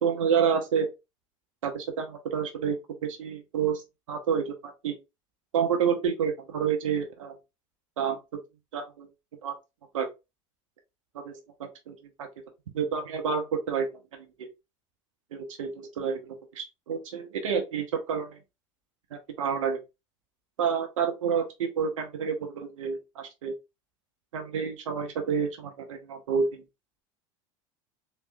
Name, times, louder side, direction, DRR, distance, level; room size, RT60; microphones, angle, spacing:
voice 1, 0.0-0.9 1.6-2.8 3.0-3.8 4.1-5.0 5.5-7.3 8.0-8.2 8.7-9.1 9.4-9.5 9.9-10.1 11.1-12.3 12.7-13.9 14.4-14.5 15.3-18.4 19.1-19.8 20.6-23.5 24.3-26.6, right 7 dB, 85° right, 0.8 m, -29 dB
3.4 x 3.0 x 2.5 m
hypercardioid pair, 80°, 16 cm